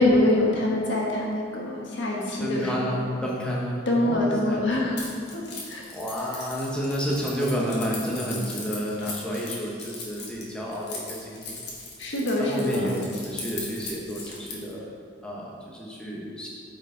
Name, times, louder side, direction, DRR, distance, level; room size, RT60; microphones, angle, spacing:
voice 1, 0.0-2.7 3.9-5.0 5.3-5.4 5.7-5.8 12.0-13.0, left 1 dB, 85° left, -2 dB, 1.4 m, -24 dB
voice 2, 2.4-3.8 4.0-4.6 5.9-11.7 12.4-14.9 15.2-16.5, equal, 5° left, -4 dB, 1.1 m, -30 dB
Keys jangling, 5.0-14.7, left 3 dB, 65° left, 1.4 m, -39 dB
9.0 x 4.5 x 3.9 m, 2.2 s
head